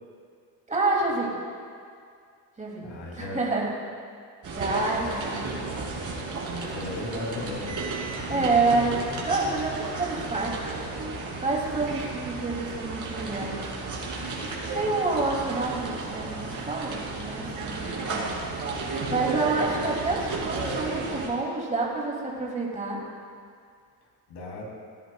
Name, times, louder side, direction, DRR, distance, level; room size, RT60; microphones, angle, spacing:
voice 1, 0.7-1.3 2.6-3.7 4.5-5.5 8.3-10.8 11.4-13.7 14.7-18.3 19.1-23.0, right 3 dB, 20° right, -2 dB, 2.6 m, -28 dB
voice 2, 2.8-3.4 6.5-7.8 24.3-24.6, left 2 dB, 80° left, -1 dB, 2.9 m, -36 dB
sound 1, 4.4-21.3, right 3 dB, 50° right, 3.0 m, -33 dB
17.5 x 10.0 x 2.3 m, 2.2 s
cardioid pair, 105°, 41 cm